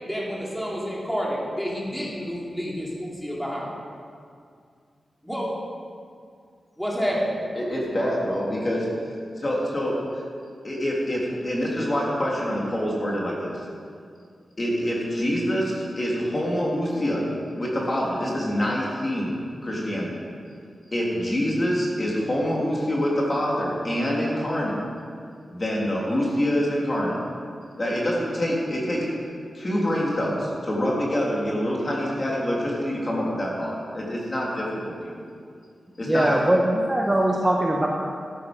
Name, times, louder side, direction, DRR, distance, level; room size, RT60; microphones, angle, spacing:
voice 1, 0.1-3.7 5.2-5.5 6.8-7.4, equal, ahead, -5 dB, 2.8 m, -29 dB
voice 2, 7.6-8.8 9.4-10.0 10.6-13.5 14.6-17.3 17.6-20.1 20.9-24.8 25.5-27.2 27.8-29.1 29.5-34.9 36.0-36.3, equal, 25° left, -4 dB, 3.2 m, -26 dB
voice 3, 36.1-37.9, right 1 dB, 15° right, -1 dB, 1.0 m, -21 dB
14.0 x 11.5 x 5.3 m, 2.2 s
wide cardioid pair, 165°, 0 cm